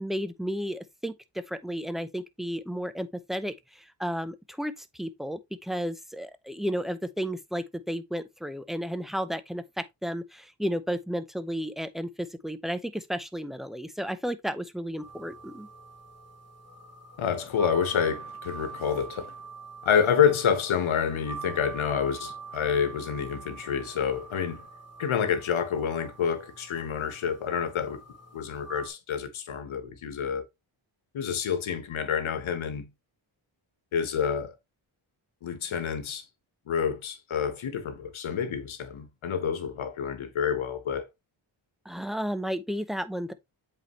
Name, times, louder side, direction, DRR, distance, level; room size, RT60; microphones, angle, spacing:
voice 1, 0.0-15.7 41.8-43.3, equal, ahead, 0.6 m, -33 dB
sound 1, 15.0-28.9, right 5 dB, 30° left, 1.9 m, -45 dB
voice 2, 17.2-19.3 19.8-24.6 25.0-28.0 28.3-30.5 31.1-32.9 33.9-34.5 35.4-36.2 36.7-41.1, left 7 dB, 90° left, 1.3 m, -28 dB
8.0 x 4.4 x 3.0 m
wide cardioid pair, 115°, 47 cm